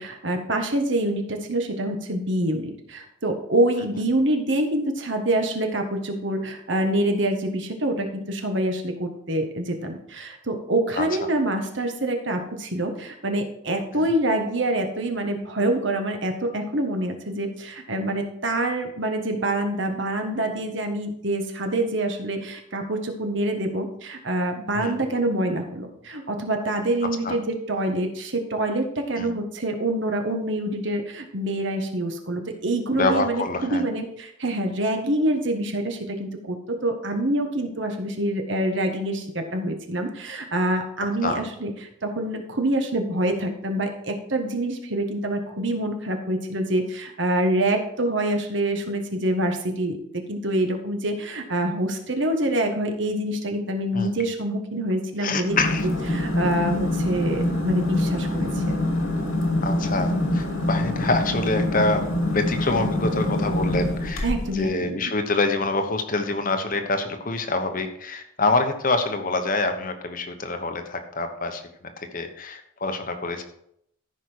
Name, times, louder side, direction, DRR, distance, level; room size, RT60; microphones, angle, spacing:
voice 1, 0.0-41.7 42.0-58.8 64.2-65.1, right 1 dB, 60° right, 4 dB, 1.5 m, -26 dB
voice 2, 11.0-11.3 13.9-14.1 24.7-25.0 27.2-27.4 29.2-29.3 33.0-33.8 41.2-41.4 53.9-54.1 55.2-55.8 59.6-64.3 64.5-71.6 72.0-73.4, left 3 dB, 40° left, 7 dB, 1.0 m, -26 dB
sound 1, 55.4-64.6, left 1 dB, 85° left, 2.7 m, -25 dB
14.0 x 5.5 x 4.6 m, 0.72 s
head